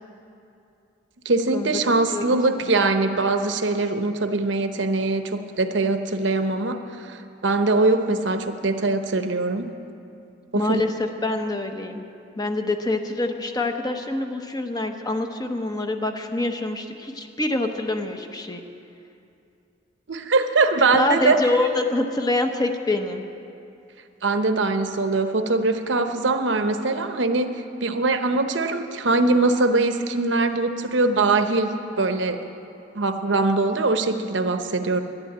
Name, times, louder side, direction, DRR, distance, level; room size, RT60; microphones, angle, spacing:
voice 1, 1.2-9.7 10.5-10.8 20.1-21.4 24.2-27.5 27.8-32.4 32.9-35.0, right 3 dB, 75° right, 8 dB, 0.9 m, -22 dB
voice 2, 10.5-12.1 12.4-18.6 20.9-23.2, left 2 dB, 20° left, 5 dB, 0.9 m, -25 dB
11.5 x 11.0 x 8.6 m, 2.7 s
head